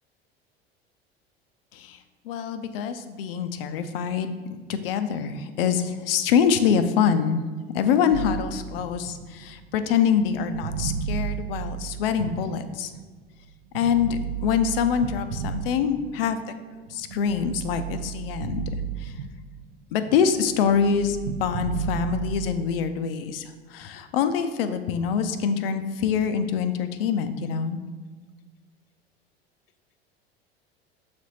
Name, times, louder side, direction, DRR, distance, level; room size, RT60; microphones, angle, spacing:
voice 1, 2.2-7.4 7.7-12.9 13.7-18.7 19.0-19.1 19.9-27.8, left 7 dB, 65° left, 10 dB, 0.6 m, -25 dB
sound 1, 8.1-13.2 13.7-16.4 16.9-19.7 20.0-22.7, right 8 dB, 75° right, 0.5 m, -34 dB
7.2 x 3.4 x 4.1 m, 1.3 s
figure-of-eight pair, 75°, 31 cm